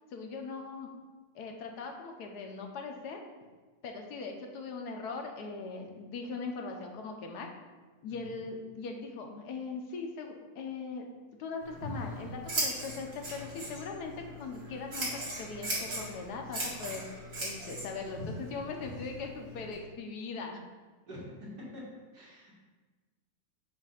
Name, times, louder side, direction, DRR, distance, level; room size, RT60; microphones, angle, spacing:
voice 1, 0.1-0.9 1.3-3.2 3.8-7.5 8.0-11.1 11.4-17.0 17.4-20.6, left 4 dB, 85° left, 3 dB, 1.4 m, -40 dB
Scissors, 11.6-19.7, right 1 dB, 65° right, 2.2 m, -38 dB
voice 2, 22.1-22.5, left 1 dB, 90° right, -6 dB, 2.5 m, -47 dB
7.2 x 2.6 x 5.7 m, 1.3 s
omnidirectional pair, 1.7 m